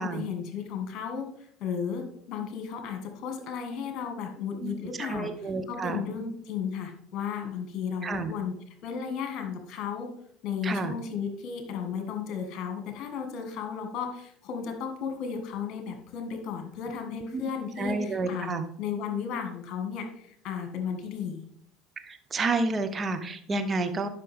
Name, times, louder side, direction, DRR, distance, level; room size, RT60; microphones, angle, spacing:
voice 1, 0.0-5.3 5.7-8.5 8.8-10.1 10.4-21.4, left 7 dB, 50° left, 5 dB, 1.8 m, -34 dB
voice 2, 4.6-6.2 8.0-8.3 10.6-10.9 17.1-17.4 17.8-18.6 22.0-24.1, right 3 dB, 30° right, 8 dB, 1.0 m, -30 dB
11.0 x 5.8 x 3.6 m, 0.67 s
figure-of-eight pair, 65°, 0 cm